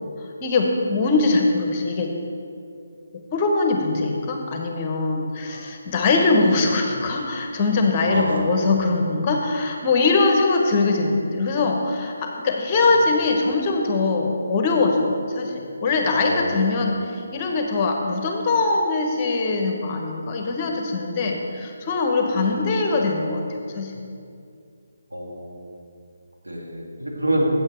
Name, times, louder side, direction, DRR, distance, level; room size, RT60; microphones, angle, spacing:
voice 1, 0.4-2.1 3.3-23.9, left 3 dB, 25° left, 2 dB, 1.0 m, -22 dB
voice 2, 8.0-8.4 16.1-16.5 22.4-22.5 25.1-25.6 26.4-27.5, right 1 dB, 80° right, -3 dB, 2.2 m, -27 dB
8.3 x 7.9 x 4.4 m, 2.4 s
figure-of-eight pair, 145°, 0 cm